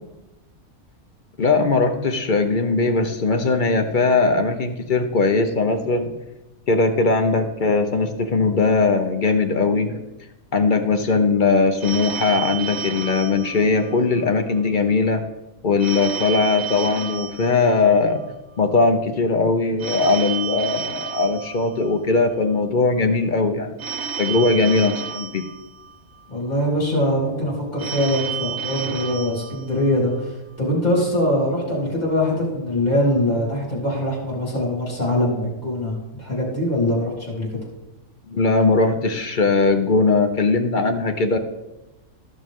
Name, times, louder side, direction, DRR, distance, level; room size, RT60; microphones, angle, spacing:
voice 1, 1.4-6.1 6.7-10.0 10.5-15.2 15.6-18.2 18.6-23.8 24.2-25.4 38.3-41.4, left 3 dB, 50° left, 6 dB, 0.6 m, -20 dB
Telephone, 11.8-14.3 15.8-18.3 19.8-22.3 23.8-26.3 27.8-30.3, right 7 dB, 50° right, 1.3 m, -31 dB
voice 2, 26.3-37.6, left 1 dB, 25° left, -4 dB, 3.4 m, -23 dB
14.0 x 6.3 x 3.6 m, 1.0 s
omnidirectional pair, 1.6 m